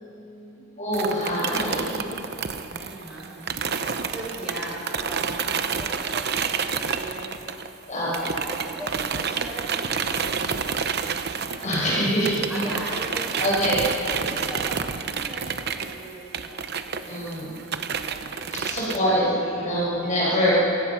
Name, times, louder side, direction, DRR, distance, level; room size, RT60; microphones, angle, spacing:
voice 1, 0.0-0.6 2.6-3.6 4.0-7.5 8.0-10.8 12.5-13.7 14.4-14.7 15.0-20.6, right 1 dB, 5° right, -7 dB, 6.8 m, -40 dB
voice 2, 0.8-2.0 7.9-8.1 11.6-12.6 13.4-13.8 14.1-14.4 17.1-17.5 18.5-20.6, equal, 35° left, -6 dB, 6.2 m, -24 dB
sound 1, 0.9-7.8 8.1-19.0, right 6 dB, 50° right, 0.9 m, -29 dB
27.0 x 16.5 x 6.1 m, 2.8 s
head